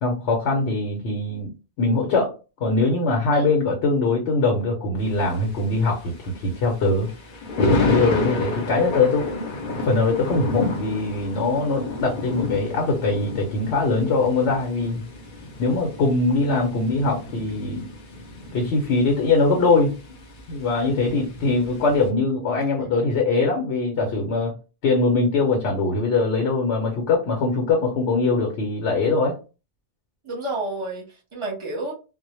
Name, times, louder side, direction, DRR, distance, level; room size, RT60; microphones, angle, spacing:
voice 1, 0.0-1.5 1.8-2.3 2.6-7.1 7.6-9.4 9.8-15.0 15.6-17.9 18.5-19.9 20.5-24.5 24.8-29.4, left 3 dB, 80° left, 2 dB, 0.9 m, -22 dB
Thunder, 5.0-22.1, left 3 dB, 55° left, 0.7 m, -30 dB
voice 2, 30.2-31.9, right 2 dB, 30° right, 0 dB, 0.7 m, -30 dB
2.1 x 2.0 x 2.9 m, 0.32 s
omnidirectional pair, 1.1 m